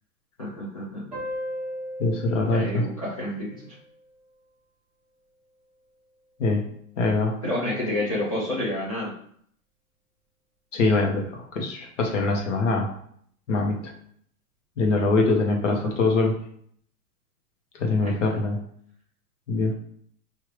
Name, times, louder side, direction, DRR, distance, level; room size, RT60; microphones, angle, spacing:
voice 1, 0.4-1.0 2.5-3.8 7.4-9.1 15.6-16.1 18.0-18.1, left 1 dB, 25° left, -7 dB, 0.5 m, -29 dB
sound 1, 1.1-4.3, equal, 5° right, 0.9 m, -37 dB
voice 2, 2.0-2.8 6.4-6.6 7.0-7.4 10.7-12.9 13.5-13.9 14.8-16.3 17.8-18.6 19.5-19.7, left 3 dB, 50° left, 1 dB, 1.1 m, -23 dB
5.0 x 2.7 x 3.2 m, 0.64 s
hypercardioid pair, 175°, 46 cm